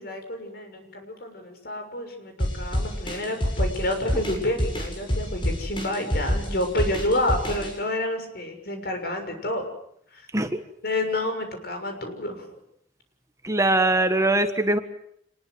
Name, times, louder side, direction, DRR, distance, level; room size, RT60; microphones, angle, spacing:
voice 1, 0.0-9.6 10.1-10.2 10.8-12.4, left 1 dB, 60° left, 5 dB, 6.6 m, -29 dB
sound 1, 2.4-7.7, equal, 30° left, 7.5 m, -27 dB
voice 2, 13.4-14.8, right 2 dB, 15° right, 8 dB, 1.5 m, -21 dB
27.0 x 21.0 x 7.9 m, 0.71 s
head